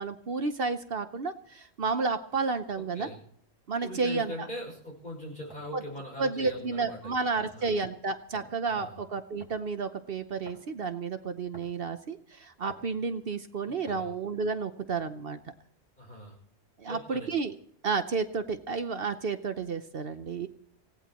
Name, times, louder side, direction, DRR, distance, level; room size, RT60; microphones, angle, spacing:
voice 1, 0.0-3.1 3.7-4.3 6.2-15.4 16.8-17.5 17.8-20.5, right 4 dB, 60° right, 9 dB, 1.0 m, -31 dB
voice 2, 2.7-3.2 3.8-7.2 7.5-7.8 8.7-9.0 13.6-14.1 16.0-16.4 16.9-17.3, left 1 dB, 45° left, -1 dB, 6.4 m, -41 dB
sound 1, 5.5-5.7 6.4-6.7 7.4-7.6 8.3-8.6 9.4-9.7 10.5-10.7 11.5-11.8 12.7-12.9 13.9-14.2, equal, 5° right, 7.1 m, -50 dB
26.0 x 17.5 x 3.0 m, 0.63 s
omnidirectional pair, 1.1 m